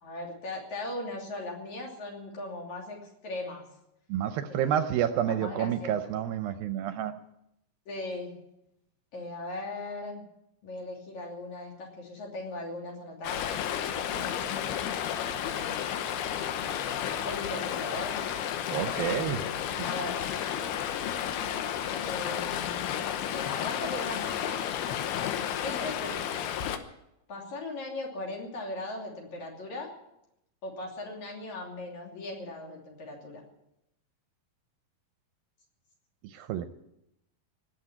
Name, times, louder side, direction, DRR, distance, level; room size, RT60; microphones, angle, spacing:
voice 1, 0.0-3.0 3.2-3.6 4.5-5.0 5.3-6.1 7.9-8.3 9.1-10.2 10.6-14.9 15.3-15.8 16.6-18.2 19.1-20.2 21.9-22.9 23.3-24.6 25.6-26.2 27.3-29.9 30.6-33.4, left 2 dB, 50° left, -1 dB, 4.1 m, -39 dB
voice 2, 4.1-7.2 18.7-19.4 19.8-19.9 36.2-36.7, right 10 dB, 80° right, 10 dB, 2.3 m, -29 dB
Stream, 13.2-26.8, left 9 dB, 90° left, 3.0 m, -32 dB
18.5 x 8.0 x 8.8 m, 0.84 s
omnidirectional pair, 4.4 m